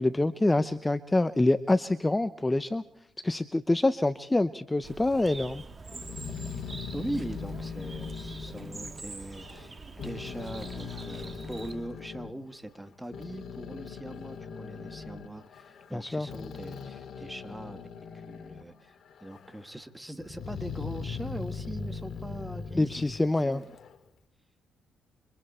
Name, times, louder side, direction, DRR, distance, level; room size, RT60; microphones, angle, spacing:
voice 1, 0.0-2.8 3.2-5.6 15.9-16.3 22.7-23.6, left 2 dB, 15° left, 12 dB, 0.8 m, -26 dB
Bird, 4.8-11.7, right 3 dB, 30° right, 2.2 m, -45 dB
Growling, 5.9-9.7 10.0-12.3 12.9-18.7 19.0-19.7 20.2-24.0, left 5 dB, 55° left, 2.8 m, -40 dB
voice 2, 6.9-17.8 18.3-19.0 19.2-23.7, right 1 dB, 5° right, 10 dB, 1.8 m, -41 dB
29.0 x 25.0 x 4.4 m, 0.66 s
cardioid pair, 95°, 0 cm